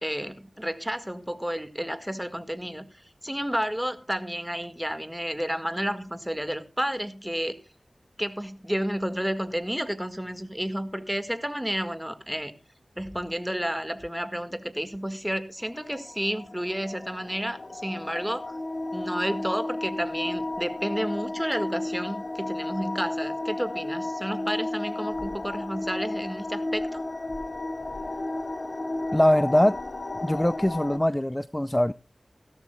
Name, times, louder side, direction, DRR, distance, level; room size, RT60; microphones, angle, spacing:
voice 1, 0.0-2.9 3.2-7.6 8.2-12.5 13.0-18.6 18.9-27.0, equal, 5° right, 1.8 m, -31 dB
sound 1, 15.6-31.0, left 2 dB, 60° left, 2.3 m, -33 dB
voice 2, 29.1-29.8 30.2-31.9, left 1 dB, 15° left, 0.5 m, -22 dB
16.5 x 13.5 x 2.3 m
wide cardioid pair, 55°, 0 cm